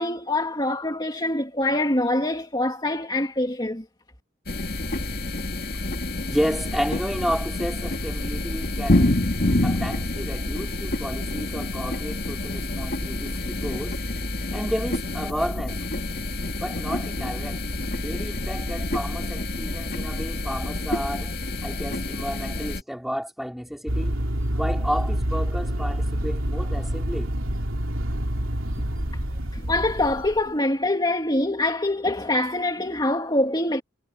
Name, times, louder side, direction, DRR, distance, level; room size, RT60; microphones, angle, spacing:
voice 1, 0.0-3.8 29.5-33.8, left 1 dB, 20° left, 2.9 m, -24 dB
sound 1, 4.5-22.8, left 1 dB, 50° left, 2.5 m, -28 dB
voice 2, 6.3-9.2 9.6-14.0 14.5-15.8 16.6-17.6 18.0-21.3 21.6-24.2 24.5-27.3, equal, ahead, 5.4 m, -31 dB
sound 2, 23.9-30.5, equal, 80° right, 3.3 m, -27 dB
head